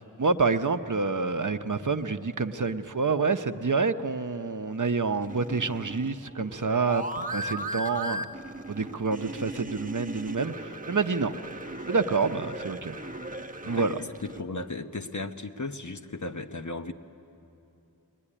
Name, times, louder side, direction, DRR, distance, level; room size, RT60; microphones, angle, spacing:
voice 1, 0.2-8.3 8.7-11.4 11.9-13.0 13.6-14.0, right 4 dB, 50° right, 9 dB, 0.8 m, -28 dB
sound 1, 5.2-14.4, right 1 dB, 20° right, 0.9 m, -37 dB
voice 2, 13.6-16.9, left 3 dB, 50° left, 7 dB, 1.0 m, -36 dB
23.0 x 20.5 x 10.0 m, 2.9 s
wide cardioid pair, 45°, 39 cm